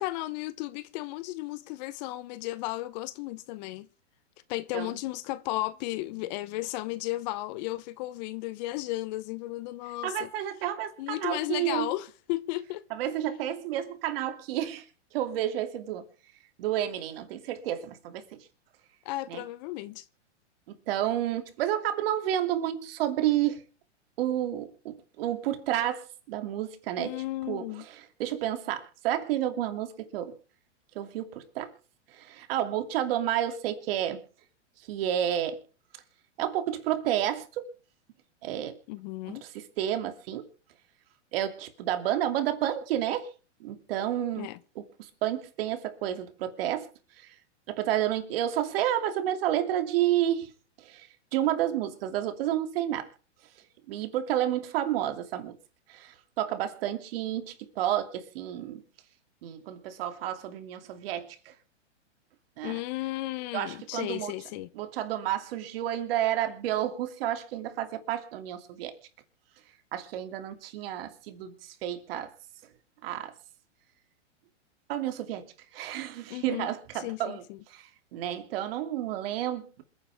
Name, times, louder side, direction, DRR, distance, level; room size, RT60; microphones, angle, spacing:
voice 1, 0.0-3.9 4.5-10.3 11.0-12.8 19.0-20.0 27.0-27.8 38.9-39.4 44.4-44.6 62.6-64.7 76.3-76.7 77.0-77.4, left 17 dB, 40° left, 0.8 m, -34 dB
voice 2, 10.0-11.9 12.9-16.0 16.6-18.5 19.3-19.4 20.7-23.6 24.2-30.4 30.9-31.7 32.1-34.2 34.8-35.6 36.4-37.7 38.4-38.8 39.3-40.5 41.3-43.3 43.6-44.5 44.7-47.4 47.7-50.5 50.8-53.1 53.5-55.6 55.9-58.8 59.4-61.6 62.6-62.8 63.5-64.3 64.7-69.0 69.9-72.3 72.6-72.7 73.0-73.3 74.9-79.8, right 11 dB, 55° right, 2.7 m, -31 dB
27.0 x 9.7 x 3.5 m
hypercardioid pair, 135°, 36 cm